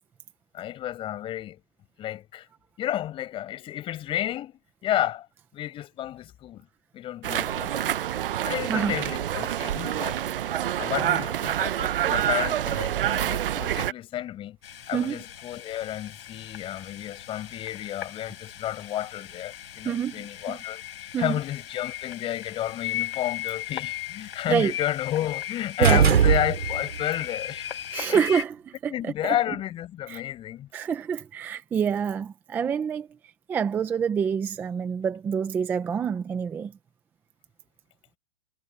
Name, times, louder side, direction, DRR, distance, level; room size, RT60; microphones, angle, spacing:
voice 1, 0.5-1.6 2.0-2.5 2.8-5.3 5.5-6.7 6.9-7.9 8.4-10.2 10.5-14.6 14.9-27.7 28.1-28.3 28.9-30.7, left 12 dB, 15° left, 5.9 m, -31 dB
street market, 7.2-13.9, right 11 dB, 65° right, 0.7 m, -27 dB
sound 1, 14.6-28.4, left 12 dB, 70° left, 4.5 m, -37 dB
voice 2, 14.9-15.2 19.8-20.6 21.1-21.4 24.5-24.7 25.8-26.0 27.9-28.6 28.8-29.3 30.1-30.2 30.7-33.1 33.5-36.7, right 7 dB, 5° right, 0.6 m, -27 dB
sound 2, 25.8-27.0, right 8 dB, 80° right, 3.5 m, -20 dB
hypercardioid pair, 160°, 30 cm